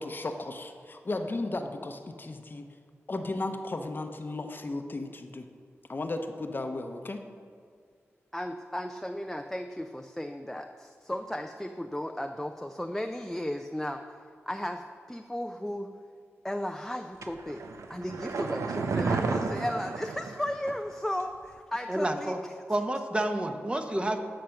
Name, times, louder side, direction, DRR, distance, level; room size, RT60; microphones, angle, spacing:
voice 1, 0.0-2.6 3.1-5.5 5.9-7.2, left 2 dB, 45° left, 5 dB, 0.8 m, -35 dB
voice 2, 8.3-14.0 14.5-15.9 16.4-17.6 17.9-22.3, left 1 dB, 5° left, 5 dB, 0.4 m, -35 dB
sound 1, 17.2-20.9 21.2-21.3, right 4 dB, 90° right, 0.6 m, -32 dB
voice 3, 21.9-22.4 22.7-24.2, right 1 dB, 20° right, 5 dB, 1.0 m, -29 dB
13.0 x 5.1 x 5.8 m, 2.1 s
cardioid pair, 65°, 5 cm